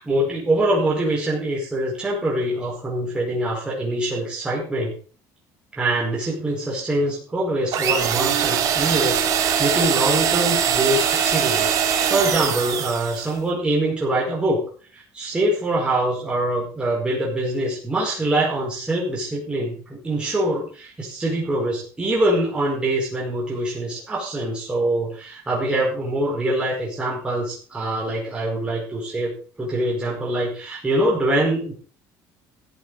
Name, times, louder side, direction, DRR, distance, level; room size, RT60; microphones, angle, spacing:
voice 1, 0.0-4.9 5.8-14.6 14.9-31.7, right 1 dB, 15° right, -5 dB, 5.3 m, -24 dB
sound 1, 7.7-13.3, right 8 dB, 55° right, 3.0 m, -22 dB
14.5 x 7.6 x 6.6 m, 0.42 s
cardioid pair, 140°, 7 cm